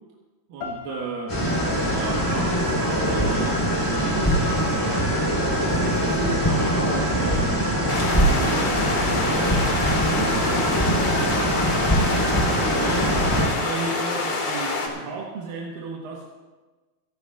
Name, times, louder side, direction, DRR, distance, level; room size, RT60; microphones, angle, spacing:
voice 1, 0.5-1.4 1.9-5.2 5.6-7.6 8.2-9.7 10.0-11.2 12.6-16.2, right 4 dB, 75° right, -2 dB, 2.9 m, -34 dB
sound 1, 0.6-3.6, left 5 dB, 70° left, 1.7 m, -41 dB
sound 2, 1.3-13.5, equal, 5° left, 3.9 m, -22 dB
sound 3, 7.9-14.9, left 3 dB, 45° left, 2.2 m, -27 dB
27.0 x 12.0 x 2.4 m, 1.3 s
omnidirectional pair, 4.2 m